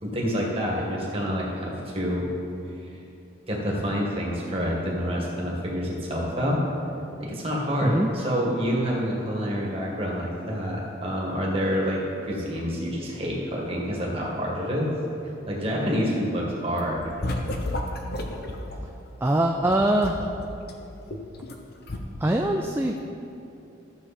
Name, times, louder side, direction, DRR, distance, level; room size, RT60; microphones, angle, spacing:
voice 1, 0.0-2.3 3.5-6.6 7.2-14.9 15.5-17.1, equal, 30° right, -3 dB, 1.8 m, -27 dB
sound 1, 16.8-18.8 19.6-21.6 21.9-22.0, left 1 dB, 50° left, 0.8 m, -32 dB
voice 2, 19.2-20.3 22.2-23.0, right 1 dB, 10° right, 2 dB, 0.3 m, -23 dB
12.5 x 6.8 x 4.3 m, 2.7 s
head